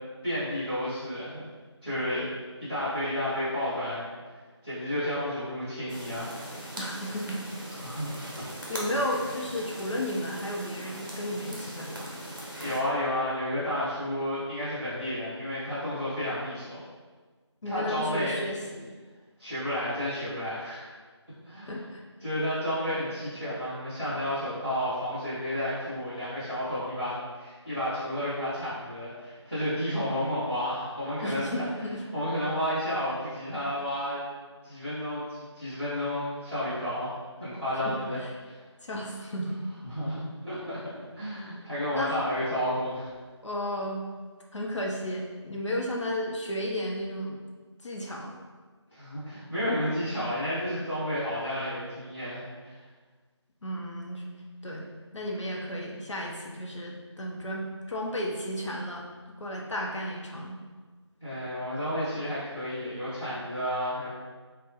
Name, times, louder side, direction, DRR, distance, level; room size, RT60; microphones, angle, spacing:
voice 1, 0.2-1.5 1.8-2.3 2.6-4.0 4.6-6.4 7.7-8.5 12.6-16.8 17.6-18.4 19.4-20.9 21.4-21.8 22.2-31.5 32.1-34.2 34.6-37.1 37.4-38.2 38.5-38.6 39.8-40.8 41.1-43.1 48.9-52.8 61.2-64.1, equal, 5° right, -17 dB, 1.0 m, -31 dB
Redwood Forest After Rain, 5.9-12.8, equal, 45° right, 0.6 m, -40 dB
voice 2, 6.8-7.5 8.7-12.2 17.6-19.0 21.7-22.0 31.2-32.0 37.7-38.3 38.8-39.6 41.9-42.3 43.4-44.0 44.5-47.4 47.8-48.3 53.6-54.2 54.6-54.9 55.1-59.1 59.4-60.6, equal, 75° left, -1 dB, 0.6 m, -33 dB
3.3 x 2.1 x 2.9 m, 1.4 s
figure-of-eight pair, 175°, 15 cm